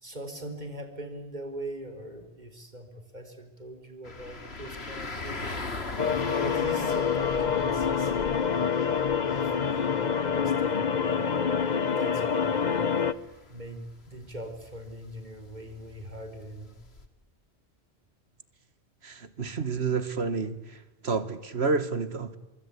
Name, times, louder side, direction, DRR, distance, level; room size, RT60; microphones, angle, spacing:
voice 1, 0.0-5.6 6.2-8.8 9.2-11.3 12.0-13.0 13.5-16.7, right 1 dB, 45° right, 7 dB, 4.4 m, -41 dB
sound 1, 4.0-17.1, left 3 dB, 75° left, 2.7 m, -41 dB
sound 2, 6.0-13.1, left 6 dB, 45° left, 1.1 m, -26 dB
voice 2, 19.0-22.4, right 4 dB, 75° right, 13 dB, 2.0 m, -30 dB
25.5 x 23.0 x 8.4 m, 1.0 s
omnidirectional pair, 1.1 m